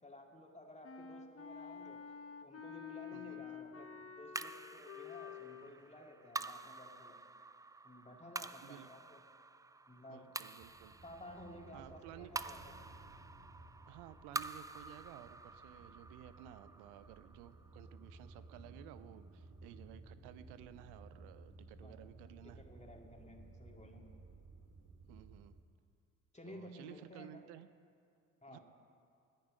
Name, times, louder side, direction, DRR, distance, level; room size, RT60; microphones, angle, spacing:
voice 1, 0.0-2.0 2.4-7.2 7.8-9.2 9.9-10.3 11.0-12.7 21.8-22.0 22.4-24.0 26.3-27.4 28.4-28.6, left 1 dB, 15° left, 1 dB, 2.8 m, -54 dB
Wind instrument woodwind instrument, 0.8-5.7, left 7 dB, 35° left, 1.3 m, -49 dB
voice 2, 3.1-3.4 8.6-8.9 10.1-10.9 11.7-12.3 13.9-22.6 25.1-25.6 26.4-27.7 28.5-28.6, right 12 dB, 70° right, 13 dB, 0.7 m, -55 dB
sound 1, 4.3-18.9, right 3 dB, 10° right, 0.4 m, -48 dB
sound 2, 10.6-25.6, right 3 dB, 35° right, 2.3 m, -57 dB
20.5 x 10.5 x 5.2 m, 2.3 s
hypercardioid pair, 50°, 41 cm